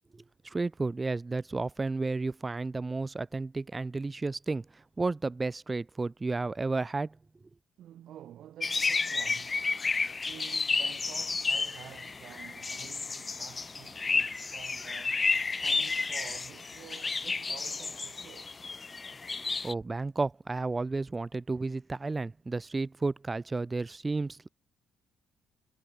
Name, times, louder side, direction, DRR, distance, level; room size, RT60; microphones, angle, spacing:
voice 1, 0.1-7.2 19.6-24.5, right 3 dB, 25° right, 0.7 m, -32 dB
voice 2, 7.8-9.6 10.2-15.2 15.6-18.5, right 11 dB, 70° right, 5.6 m, -50 dB
sound 1, 8.6-19.7, left 4 dB, 30° left, 0.7 m, -31 dB
supercardioid pair, 75°, 0 cm